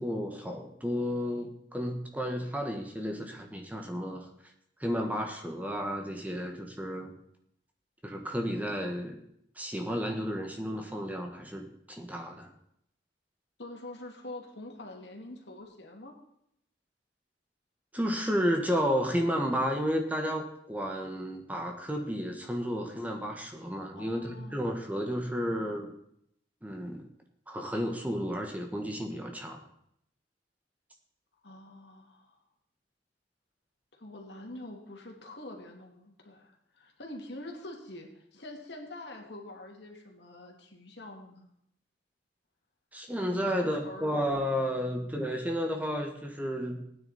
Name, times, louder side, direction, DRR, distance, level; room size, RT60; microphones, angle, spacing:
voice 1, 0.0-4.3 4.8-7.1 8.0-9.2 9.6-12.5 17.9-25.9 26.6-27.1 27.5-29.6 42.9-46.8, equal, 10° right, 2 dB, 1.5 m, -32 dB
voice 2, 13.6-16.1 24.0-24.6 31.4-32.4 33.9-41.5 43.3-44.2, left 1 dB, 75° left, 2 dB, 2.4 m, -45 dB
16.0 x 9.6 x 4.3 m, 0.73 s
head